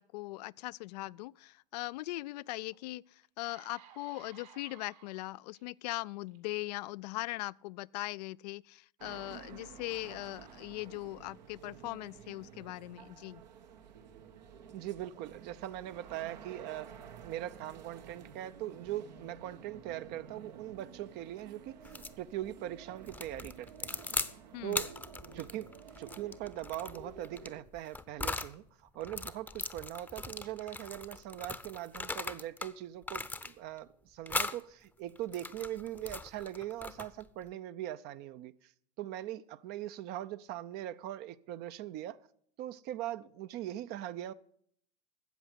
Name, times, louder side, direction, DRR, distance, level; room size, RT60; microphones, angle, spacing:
voice 1, 0.0-13.4 24.5-24.8, left 20 dB, 70° left, 0.4 m, -40 dB
sound 1, 2.7-2.8 3.2-5.6 6.3-6.5, right 9 dB, 70° right, 2.6 m, -57 dB
sound 2, 9.0-27.6, right 7 dB, 90° right, 1.6 m, -52 dB
voice 2, 14.7-24.0 24.6-24.9 25.3-25.7 26.0-38.7 39.0-42.2 42.6-44.3, right 13 dB, 50° right, 0.6 m, -41 dB
sound 3, 21.8-22.2 23.1-24.3 24.7-28.5 29.0-32.7 33.0-33.8 34.3-34.6 35.1-37.3, left 3 dB, 5° left, 0.7 m, -39 dB
13.5 x 8.1 x 7.9 m
hypercardioid pair, 110°, 21 cm